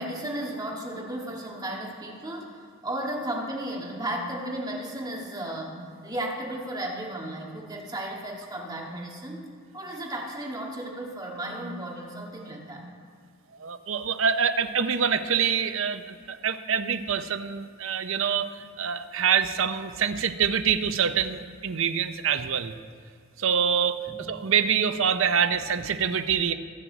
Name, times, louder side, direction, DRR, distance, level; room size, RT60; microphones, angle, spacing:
voice 1, 0.0-9.5 9.7-12.9 24.1-24.3, right 1 dB, 20° right, -2 dB, 1.8 m, -34 dB
voice 2, 13.6-18.5 18.8-22.7 23.4-24.0 24.3-26.5, right 7 dB, 65° right, 10 dB, 0.6 m, -25 dB
21.5 x 7.6 x 4.0 m, 2.1 s
head